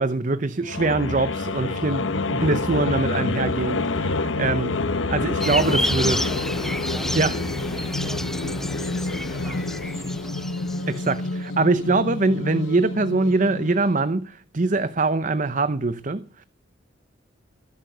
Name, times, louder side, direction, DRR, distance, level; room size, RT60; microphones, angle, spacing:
voice 1, 0.0-6.2 7.1-7.3 10.9-16.4, right 3 dB, 40° right, 0.8 m, -23 dB
sound 1, 0.6-13.9, left 3 dB, 85° left, 1.1 m, -27 dB
voice 2, 5.1-10.4, right 1 dB, 15° right, 3.0 m, -45 dB
sound 2, 5.4-11.1, equal, ahead, 0.7 m, -30 dB
18.0 x 12.0 x 6.7 m
head